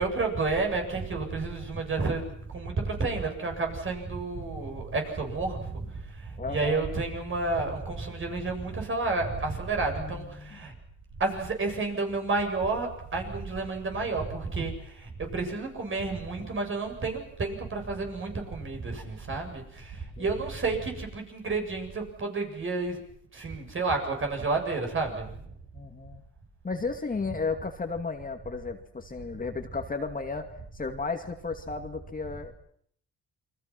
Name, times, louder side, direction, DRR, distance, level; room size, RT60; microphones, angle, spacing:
voice 1, 0.0-10.7 11.2-23.0 23.3-25.3, right 3 dB, 40° right, 3 dB, 7.7 m, -31 dB
voice 2, 6.4-6.8 10.0-10.6 20.2-20.3 25.7-26.2 26.6-30.5 30.7-32.5, left 4 dB, 30° left, 5 dB, 2.4 m, -34 dB
28.5 x 23.5 x 6.1 m, 0.64 s
cardioid pair, 90°, 30 cm